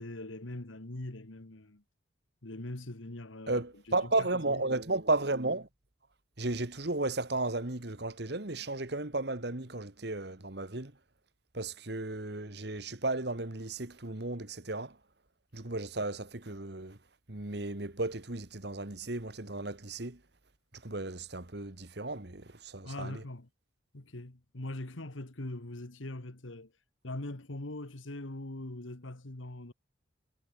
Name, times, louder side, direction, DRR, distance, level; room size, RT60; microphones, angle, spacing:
voice 1, 0.0-1.8 2.4-4.7 22.8-23.5 23.9-26.7 27.0-29.7, left 1 dB, 85° left, 1.9 m, -42 dB
voice 2, 3.5-5.7 6.4-10.9 11.5-14.9 15.5-17.0 17.3-20.2 20.8-23.2, right 2 dB, 55° right, 1.8 m, -34 dB
head